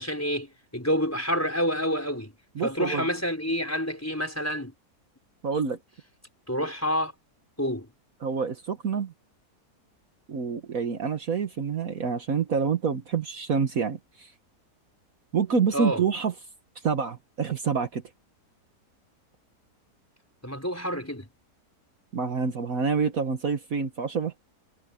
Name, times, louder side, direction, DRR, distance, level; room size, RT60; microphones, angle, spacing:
voice 1, 0.0-2.3 2.6-4.7 6.5-7.1 7.6-7.9 15.7-16.0 20.4-21.3, equal, 10° left, 4.9 m, -28 dB
voice 2, 2.5-3.0 5.4-5.8 8.2-9.1 10.3-14.3 15.3-16.3 16.8-18.0 22.1-24.5, right 5 dB, 60° right, 1.7 m, -27 dB
omnidirectional pair, 1.7 m